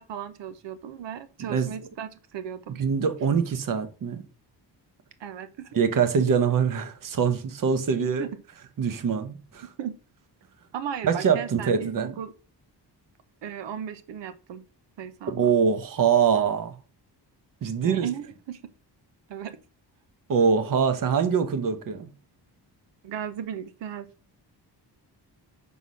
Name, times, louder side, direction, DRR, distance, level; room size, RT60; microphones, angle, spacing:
voice 1, 0.0-2.8 5.2-5.7 8.0-8.3 9.8-9.9 10.7-12.3 13.4-14.6 15.0-15.5 17.8-18.6 19.3-19.6 23.0-24.1, right 9 dB, 90° right, 0.9 m, -36 dB
voice 2, 1.4-1.7 2.8-4.2 5.7-8.3 8.8-9.7 11.0-12.1 15.3-16.8 17.6-18.1 20.3-22.1, right 6 dB, 50° right, 1.0 m, -24 dB
6.0 x 5.6 x 6.1 m
wide cardioid pair, 170°, 42 cm